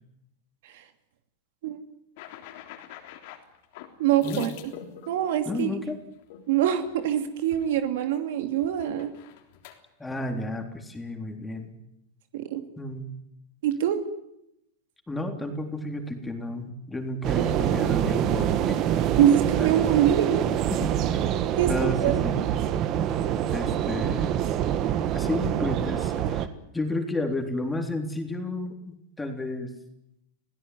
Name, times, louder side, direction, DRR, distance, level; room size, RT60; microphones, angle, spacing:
sound 1, 2.2-5.7 6.3-6.5 6.8-7.1 7.4-8.2 8.5-9.8, left 10 dB, 60° left, 3.5 m, -44 dB
voice 1, 4.0-4.5 5.1-5.7 6.5-9.1 12.3-12.6 13.6-14.0 19.2-20.4 21.6-22.1, right 10 dB, 70° right, 8 dB, 2.7 m, -24 dB
voice 2, 5.5-6.0 10.0-11.7 12.8-13.1 15.1-18.9 19.5-20.1 20.7-21.2 21.7-22.4 23.5-24.5 25.1-26.5 26.7-29.8, left 2 dB, 10° left, 4 dB, 3.7 m, -32 dB
sound 2, 17.2-26.5, right 10 dB, 40° right, 1.7 m, -26 dB
27.0 x 17.0 x 9.5 m, 0.83 s
hypercardioid pair, 120°, 0 cm